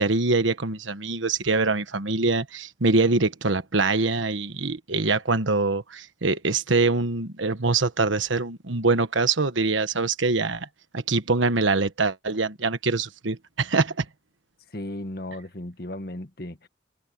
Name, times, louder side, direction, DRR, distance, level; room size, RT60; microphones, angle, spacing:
voice 1, 0.0-10.7 10.9-14.0, right 3 dB, 90° right, 1.3 m, -24 dB
voice 2, 14.7-16.7, left 1 dB, 50° left, 1.7 m, -35 dB
open air
head